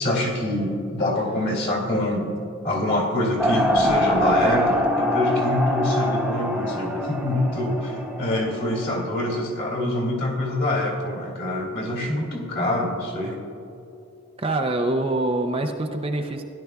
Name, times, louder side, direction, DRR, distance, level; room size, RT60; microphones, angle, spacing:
voice 1, 0.0-2.3 2.6-13.4, left 1 dB, 45° left, -1 dB, 2.4 m, -25 dB
sound 1, 3.4-9.4, equal, 5° right, 1.0 m, -24 dB
voice 2, 14.4-16.4, right 2 dB, 25° right, 4 dB, 0.5 m, -25 dB
16.5 x 11.5 x 2.3 m, 2.7 s
head